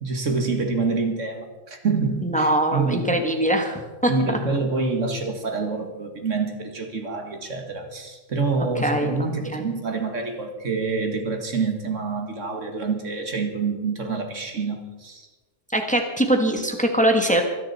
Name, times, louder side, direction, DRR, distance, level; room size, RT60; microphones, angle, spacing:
voice 1, 0.0-3.2 4.1-15.3, right 4 dB, 75° right, 4 dB, 2.1 m, -27 dB
voice 2, 2.2-4.1 8.8-9.1 9.5-9.7 15.7-17.4, right 1 dB, 5° left, 3 dB, 1.5 m, -22 dB
25.5 x 10.5 x 4.3 m, 1.2 s
omnidirectional pair, 1.3 m